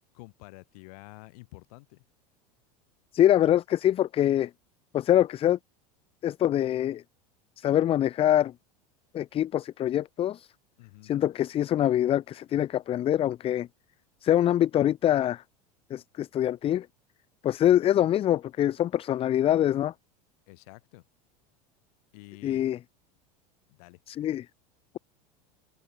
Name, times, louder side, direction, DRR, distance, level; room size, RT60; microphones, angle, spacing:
voice 1, 0.1-2.0 10.8-11.1 20.5-21.1 22.1-22.6 23.7-24.0, left 25 dB, 65° left, 2.7 m, -49 dB
voice 2, 3.1-4.5 4.9-5.6 6.2-7.0 7.6-8.5 9.1-10.5 11.0-13.7 14.2-15.4 15.9-16.9 17.4-19.9 22.4-22.8 24.1-24.5, left 11 dB, 30° left, 0.4 m, -24 dB
open air
hypercardioid pair, 95°, 20 cm